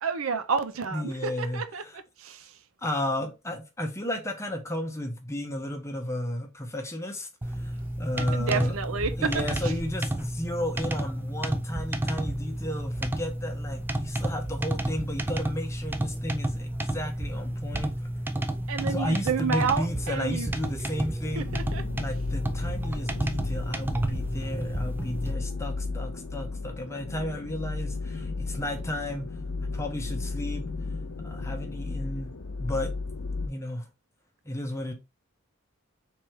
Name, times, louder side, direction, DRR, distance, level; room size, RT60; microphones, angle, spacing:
voice 1, 0.0-2.5 8.2-9.3 9.6-9.7 18.7-20.5 21.4-21.8, right 5 dB, 70° right, 0.5 m, -30 dB
voice 2, 0.9-2.0 2.8-8.8 9.2-18.1 18.8-21.5 22.0-29.3 29.7-30.6 31.2-32.3 32.6-32.9 33.5-33.9 34.4-34.9, left 1 dB, 15° left, 0.8 m, -33 dB
sound 1, 7.4-25.3, right 1 dB, 10° right, 0.3 m, -31 dB
sound 2, 21.3-33.5, left 3 dB, 75° left, 0.8 m, -34 dB
3.4 x 3.2 x 4.4 m
head